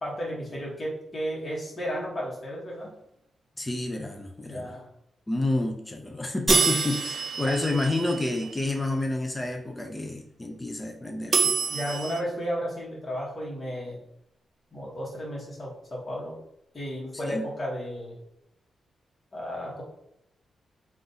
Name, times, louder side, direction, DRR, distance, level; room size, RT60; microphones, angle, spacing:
voice 1, 0.0-2.9 4.5-4.9 7.4-7.6 11.7-14.0 14.7-16.4 16.7-18.2 19.3-19.8, equal, 30° left, -5 dB, 1.1 m, -33 dB
voice 2, 3.6-4.7 5.3-11.5 17.3-17.4, left 2 dB, 15° left, 3 dB, 0.4 m, -29 dB
sound 1, 6.5-9.1, right 2 dB, 15° right, 1.2 m, -32 dB
sound 2, 6.5-8.7 11.3-12.2, right 5 dB, 50° right, 0.5 m, -27 dB
3.9 x 2.4 x 3.9 m, 0.79 s
wide cardioid pair, 150°, 0 cm